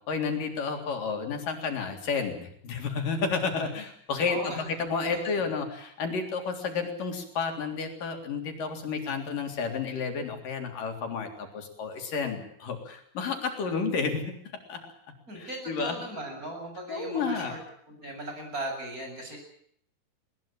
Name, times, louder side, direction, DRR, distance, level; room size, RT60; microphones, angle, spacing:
voice 1, 0.1-14.3 14.7-14.8 15.4-16.0 16.9-17.6, left 5 dB, 80° left, 4 dB, 5.2 m, -31 dB
voice 2, 4.3-4.6 5.1-5.4 15.3-17.6 17.9-19.4, right 1 dB, 25° right, 3 dB, 8.2 m, -38 dB
21.0 x 20.0 x 8.9 m, 0.67 s
omnidirectional pair, 3.8 m